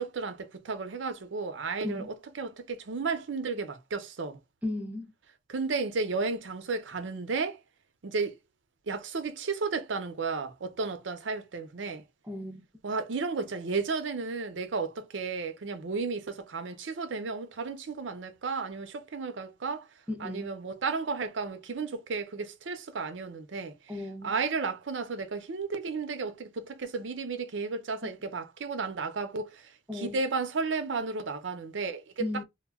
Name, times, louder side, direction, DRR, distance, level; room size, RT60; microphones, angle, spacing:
voice 1, 0.0-4.4 5.5-7.6 8.0-8.4 8.9-12.0 12.8-19.9 20.2-23.7 24.2-32.4, right 4 dB, 80° right, 0.6 m, -33 dB
voice 2, 4.6-5.1 12.3-12.6 20.1-20.5 23.9-24.3 29.9-30.2 32.2-32.4, left 2 dB, 10° right, 0.6 m, -35 dB
2.2 x 2.1 x 3.4 m
head